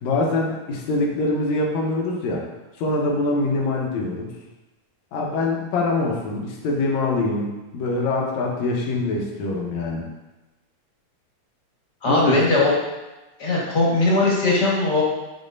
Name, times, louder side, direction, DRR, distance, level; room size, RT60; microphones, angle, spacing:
voice 1, 0.0-2.4 2.8-4.3 5.1-10.1 12.1-12.6, left 2 dB, 75° left, -2 dB, 2.2 m, -24 dB
voice 2, 12.0-12.7 13.4-15.0, left 2 dB, 45° left, -5 dB, 1.7 m, -19 dB
10.0 x 4.3 x 2.6 m, 1.1 s
omnidirectional pair, 3.3 m